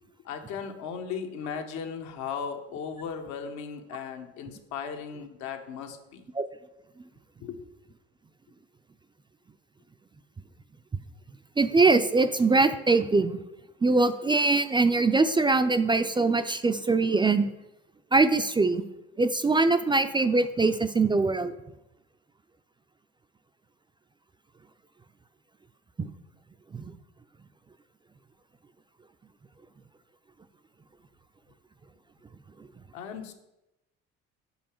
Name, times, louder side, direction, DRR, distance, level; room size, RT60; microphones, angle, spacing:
voice 1, 0.2-6.2 7.4-7.6 32.9-33.3, left 6 dB, 70° left, 6 dB, 0.9 m, -37 dB
voice 2, 11.6-13.4 13.8-17.5 18.1-18.8 19.2-21.5 26.0-26.1, right 3 dB, 15° right, 10 dB, 0.4 m, -22 dB
5.5 x 4.7 x 4.4 m, 0.91 s
hypercardioid pair, 65°, 30 cm